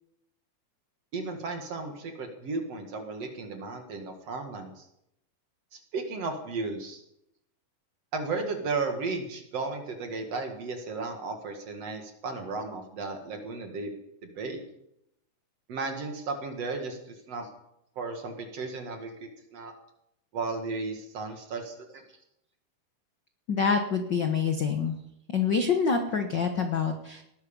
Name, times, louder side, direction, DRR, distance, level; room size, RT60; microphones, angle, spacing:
voice 1, 1.1-4.9 5.9-7.0 8.1-13.9 14.2-14.6 15.7-17.5 18.0-19.7 20.3-22.0, right 3 dB, 50° right, 4 dB, 2.8 m, -34 dB
voice 2, 23.5-25.0 25.3-27.2, left 5 dB, 60° left, 5 dB, 1.2 m, -26 dB
19.0 x 12.0 x 5.4 m, 0.79 s
omnidirectional pair, 3.9 m